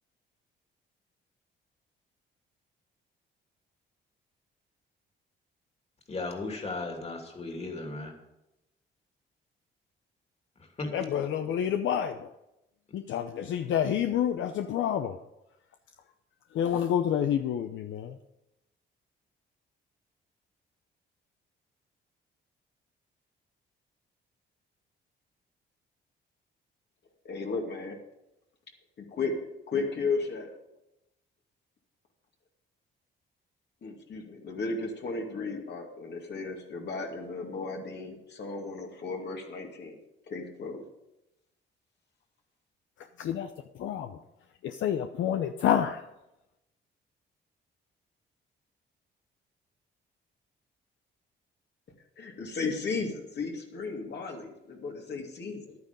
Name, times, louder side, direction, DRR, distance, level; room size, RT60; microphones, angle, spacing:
voice 1, 6.1-8.1 10.8-11.1, left 3 dB, 30° left, 2 dB, 2.8 m, -36 dB
voice 2, 10.8-12.3 12.9-15.2 16.5-18.2 43.0-44.2 44.6-46.1, left 9 dB, 75° left, 7 dB, 0.7 m, -29 dB
voice 3, 27.2-28.0 29.0-30.5 33.8-40.0 40.3-40.8 52.2-55.8, left 4 dB, 60° left, 2 dB, 2.4 m, -35 dB
11.0 x 9.4 x 5.2 m, 0.90 s
cardioid pair, 90°, 20 cm